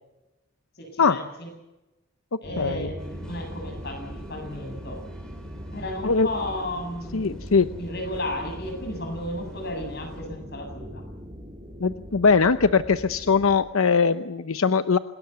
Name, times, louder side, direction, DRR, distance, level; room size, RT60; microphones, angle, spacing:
voice 1, 0.8-1.5 2.4-5.0 5.7-7.5 7.8-11.0, left 1 dB, 50° left, 5 dB, 7.7 m, -34 dB
sound 1, 2.4-13.6, equal, 25° right, 4.4 m, -40 dB
voice 2, 2.6-2.9 6.0-6.3 7.1-7.7 11.8-15.0, left 5 dB, 90° left, 11 dB, 0.8 m, -21 dB
sound 2, 3.0-10.2, equal, 5° left, 4.3 m, -51 dB
27.5 x 19.5 x 8.1 m, 0.99 s
head